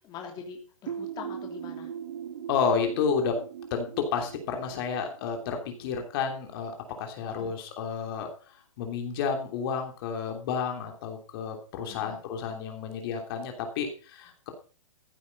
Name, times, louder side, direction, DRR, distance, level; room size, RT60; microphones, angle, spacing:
voice 1, 0.0-1.9 7.3-7.5 11.9-12.2, left 6 dB, 25° left, 1 dB, 3.1 m, -43 dB
sound 1, 0.9-6.4, right 8 dB, 65° right, 1.4 m, -40 dB
voice 2, 2.5-3.4 3.7-8.3 8.8-14.5, left 6 dB, 45° left, 4 dB, 3.1 m, -31 dB
15.0 x 8.6 x 5.4 m, 0.38 s
hypercardioid pair, 145°, 17 cm